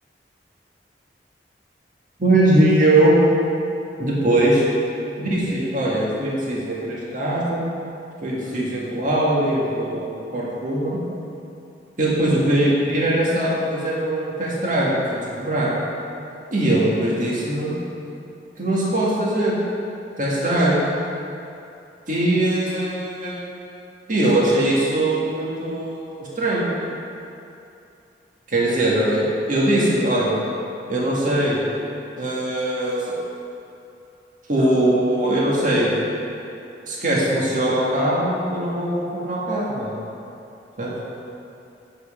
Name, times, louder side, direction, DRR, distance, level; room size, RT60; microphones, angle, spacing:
voice 1, 2.2-3.2 4.0-4.6 5.2-7.6 8.2-11.0 12.0-15.7 16.5-17.7 18.6-19.6 20.2-20.8 22.1-23.4 24.1-26.7 28.5-30.4 30.9-31.6 32.2-33.1 34.5-35.9 36.9-39.9 40.8-40.9, right 1 dB, 45° right, -6 dB, 1.9 m, -21 dB
8.3 x 7.4 x 5.1 m, 2.7 s
head